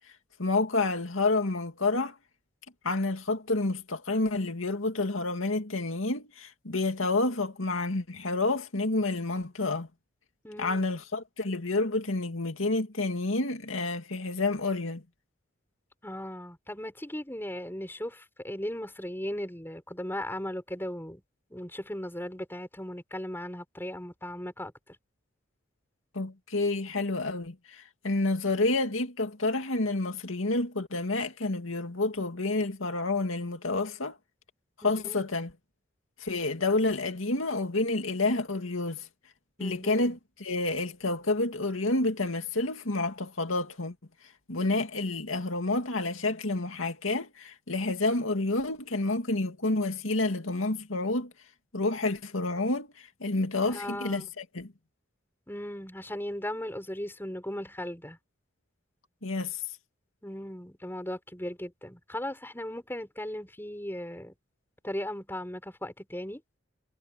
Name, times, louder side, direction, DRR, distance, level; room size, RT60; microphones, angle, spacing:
voice 1, 0.4-2.1 2.8-9.9 10.6-15.0 26.1-34.2 34.8-35.5 36.2-39.1 39.6-43.9 44.5-51.3 51.7-54.7 59.2-59.6, left 2 dB, 90° left, 2.4 m, -29 dB
voice 2, 10.4-10.9 16.0-21.2 21.5-24.7 34.8-35.1 39.6-40.1 53.6-54.3 55.5-58.2 60.2-64.3 64.8-66.4, left 1 dB, 10° left, 5.2 m, -37 dB
head